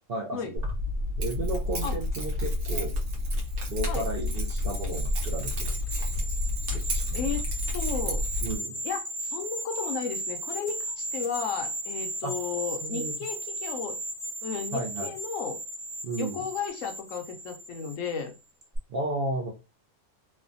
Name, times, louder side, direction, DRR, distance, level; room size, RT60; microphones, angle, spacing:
voice 1, 0.1-0.6 1.2-2.9 3.7-5.8 6.2-6.3 6.7-7.2 8.4-8.8 12.2-12.3 12.8-13.1 14.7-15.1 16.0-16.4 18.9-19.5, right 2 dB, 65° right, -1 dB, 0.5 m, -33 dB
Keys jangling, 0.6-8.5, left 1 dB, 80° right, 1.3 m, -30 dB
sound 1, 3.6-18.3 18.6-18.8, right 1 dB, 30° right, 0.9 m, -36 dB
voice 2, 7.1-7.4 7.7-8.2 8.8-14.0 14.4-15.6 16.2-18.3, left 6 dB, 70° left, 5 dB, 0.9 m, -34 dB
3.2 x 2.1 x 2.5 m, 0.28 s
omnidirectional pair, 1.5 m